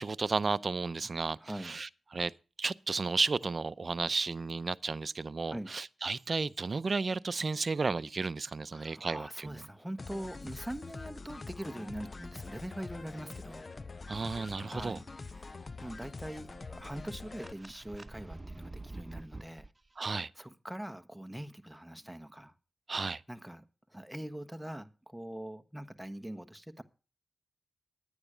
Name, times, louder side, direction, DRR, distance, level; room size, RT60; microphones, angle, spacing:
voice 1, 0.0-2.3 2.6-9.6 14.1-15.0 20.0-20.3 22.9-23.2, right 4 dB, 55° right, 0.5 m, -33 dB
voice 2, 1.4-1.8 5.5-5.7 8.7-13.6 14.6-15.5 15.8-19.7 20.3-22.5 23.3-23.6 23.9-26.8, right 1 dB, 5° right, 1.2 m, -43 dB
sound 1, 10.0-17.5, left 3 dB, 50° left, 0.5 m, -45 dB
sound 2, 16.1-19.7, right 2 dB, 30° right, 0.9 m, -47 dB
10.0 x 9.6 x 4.9 m
cardioid pair, 45°, 0 cm